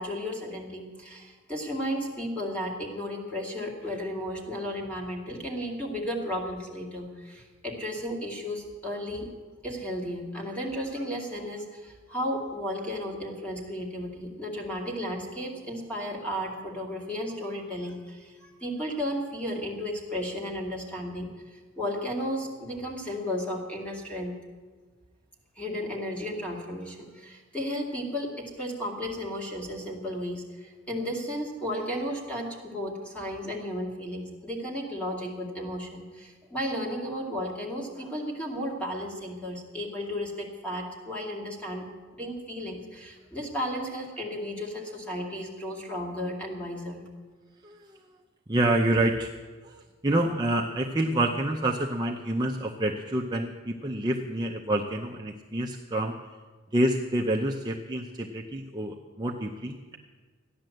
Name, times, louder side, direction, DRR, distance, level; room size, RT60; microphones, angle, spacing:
voice 1, 0.0-9.3 9.6-24.4 25.6-47.0, equal, 5° left, -1 dB, 2.4 m, -34 dB
voice 2, 47.6-48.0 48.5-49.3 49.6-56.2 56.7-60.0, right 1 dB, 20° right, 1 dB, 0.7 m, -28 dB
14.0 x 10.5 x 7.8 m, 1.4 s
head